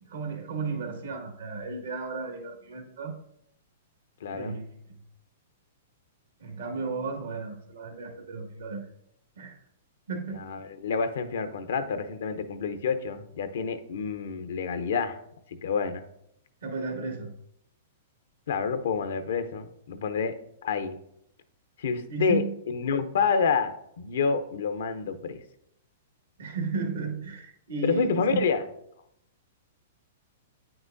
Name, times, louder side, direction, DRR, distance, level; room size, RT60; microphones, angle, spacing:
voice 1, 0.0-3.1 4.3-4.7 6.4-8.9 9.4-9.5 10.1-10.5 16.6-17.3 22.1-22.5 26.4-28.5, right 4 dB, 75° right, 2 dB, 1.7 m, -34 dB
voice 2, 4.2-4.6 10.3-15.2 15.6-16.0 18.5-20.3 20.6-21.0 21.8-23.7 24.0-25.4 27.8-28.6, left 5 dB, 70° left, 10 dB, 0.8 m, -28 dB
9.2 x 5.9 x 2.6 m, 0.75 s
hypercardioid pair, 115°, 0 cm